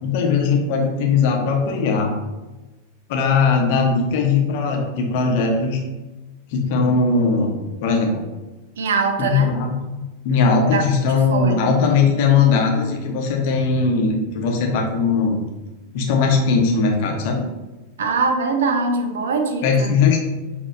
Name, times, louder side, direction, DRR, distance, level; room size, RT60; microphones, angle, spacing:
voice 1, 0.0-2.1 3.1-5.8 6.5-8.2 9.2-9.8 10.2-15.4 15.9-17.4 19.6-20.2, left 5 dB, 50° left, 1 dB, 0.9 m, -19 dB
voice 2, 8.8-9.5 10.7-10.9 11.3-11.7 18.0-19.9, right 4 dB, 60° right, 5 dB, 0.6 m, -22 dB
6.2 x 2.9 x 2.7 m, 1.1 s
figure-of-eight pair, 90°, 0 cm